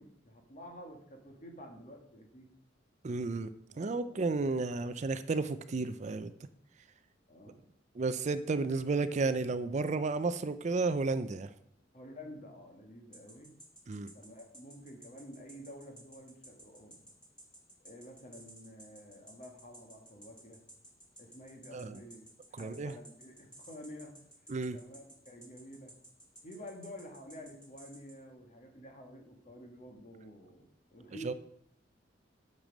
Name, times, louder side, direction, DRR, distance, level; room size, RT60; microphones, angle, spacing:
voice 1, 0.0-2.5 3.7-4.2 7.3-7.6 11.9-13.5 14.1-17.0 17.8-20.6 21.2-22.2 22.5-24.2 24.7-25.9 26.4-31.3, equal, 40° left, 3 dB, 1.7 m, -50 dB
voice 2, 3.0-3.5 3.8-6.3 7.9-11.5 13.9-14.1 21.7-22.0 22.5-22.9 24.5-24.8 31.2-31.3, right 3 dB, 40° right, 12 dB, 0.4 m, -32 dB
sound 1, 13.1-28.2, right 1 dB, 5° left, 1.9 m, -54 dB
9.0 x 6.8 x 5.2 m, 0.72 s
head